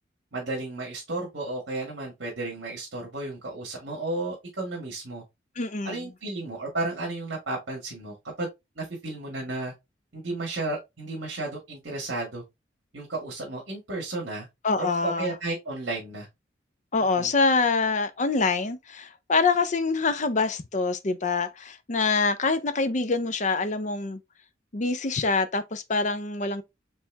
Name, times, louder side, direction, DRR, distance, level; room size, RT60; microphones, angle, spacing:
voice 1, 0.3-5.2 5.8-8.5 8.8-9.7 10.1-12.4 12.9-14.5 14.8-16.3 17.1-17.3, right 2 dB, 60° right, 1.8 m, -33 dB
voice 2, 5.6-6.0 14.6-15.3 16.9-24.2 24.7-26.6, left 4 dB, 40° left, 0.6 m, -25 dB
4.5 x 3.4 x 3.4 m
head